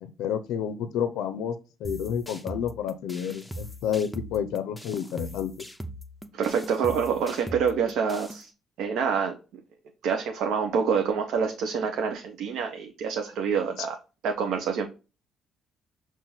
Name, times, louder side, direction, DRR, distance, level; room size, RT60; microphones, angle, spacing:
voice 1, 0.0-5.6 13.8-13.9, left 8 dB, 85° left, 10 dB, 0.4 m, -30 dB
sound 1, 1.8-8.4, right 1 dB, 5° left, 0.6 m, -41 dB
voice 2, 6.3-8.5 8.8-9.3 10.0-14.0 14.2-14.9, right 6 dB, 80° right, 4 dB, 0.6 m, -27 dB
5.6 x 2.5 x 3.8 m, 0.32 s
cardioid pair, 100°, 0 cm